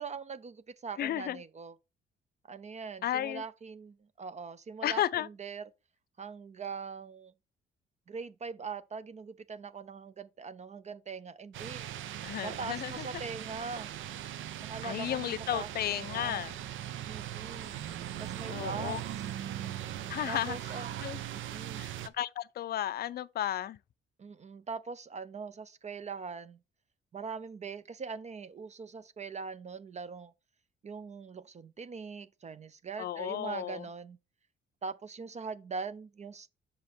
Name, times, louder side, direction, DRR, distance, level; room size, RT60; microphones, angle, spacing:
voice 1, 0.0-1.7 2.5-5.7 6.2-7.3 8.1-11.8 12.4-13.9 14.6-15.3 15.5-16.4 17.1-17.7 18.2-19.1 20.3-21.0 21.3-21.8 24.2-26.6 27.1-30.3 30.8-34.2 34.8-36.5, right 5 dB, 35° right, 0.5 m, -42 dB
voice 2, 1.0-1.4 3.0-3.4 4.8-5.3 12.2-13.1 14.8-16.6 18.5-19.0 20.1-21.2 21.8-23.8 33.0-33.9, left 12 dB, 50° left, 0.4 m, -34 dB
sound 1, 11.5-22.1, right 12 dB, 75° right, 0.7 m, -40 dB
6.9 x 5.2 x 4.4 m
cardioid pair, 90°, 20 cm